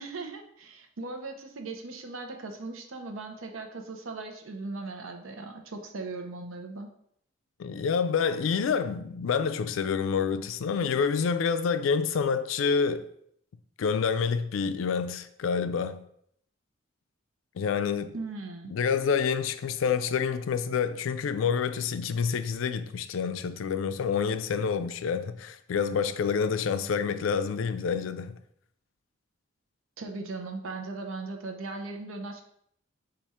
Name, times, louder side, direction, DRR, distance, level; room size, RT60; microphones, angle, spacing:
voice 1, 0.0-6.9 18.1-18.7 30.0-32.4, right 3 dB, 85° right, 0.7 m, -38 dB
voice 2, 7.6-13.1 13.8-16.0 17.6-18.1 18.7-28.3, left 6 dB, 70° left, 0.3 m, -28 dB
4.2 x 2.5 x 4.7 m
head